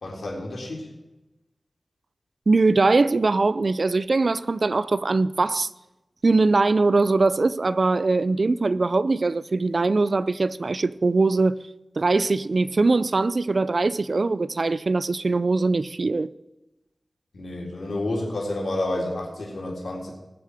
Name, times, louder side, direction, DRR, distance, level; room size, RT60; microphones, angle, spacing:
voice 1, 0.0-0.9 17.3-20.1, left 1 dB, 75° left, 3.7 m, -30 dB
voice 2, 2.5-5.7 6.2-11.6 12.0-16.3, right 3 dB, 55° right, 0.4 m, -21 dB
21.0 x 7.5 x 4.9 m
wide cardioid pair, 65°, 0 cm